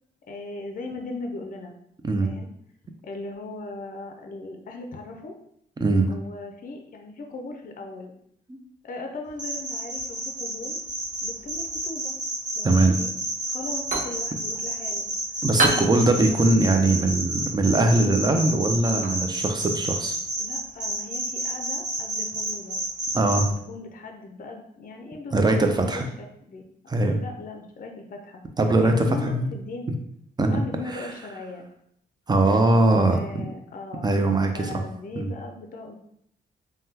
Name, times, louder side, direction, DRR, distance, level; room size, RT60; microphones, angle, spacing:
voice 1, 0.3-1.7 2.2-2.5 3.0-5.3 6.1-8.1 8.8-10.8 11.2-12.1 12.5-13.1 13.5-15.1 15.6-16.4 20.4-22.8 23.5-26.1 26.5-26.7 27.1-28.4 28.8-29.9 30.5-31.7 33.1-34.1 34.5-35.9, left 3 dB, 45° left, 3 dB, 0.5 m, -38 dB
sound 1, 9.4-23.4, right 1 dB, 70° right, 1.0 m, -30 dB
voice 2, 12.6-13.0 15.4-20.2 23.1-23.5 25.3-26.1 26.9-27.2 28.6-29.5 30.4-30.6 32.3-33.5 34.0-34.8 35.2-35.3, right 2 dB, 20° right, 5 dB, 0.5 m, -21 dB
sound 2, 13.5-21.0, right 2 dB, 40° right, 0.8 m, -33 dB
3.5 x 2.2 x 2.8 m, 0.71 s
cardioid pair, 80°, 19 cm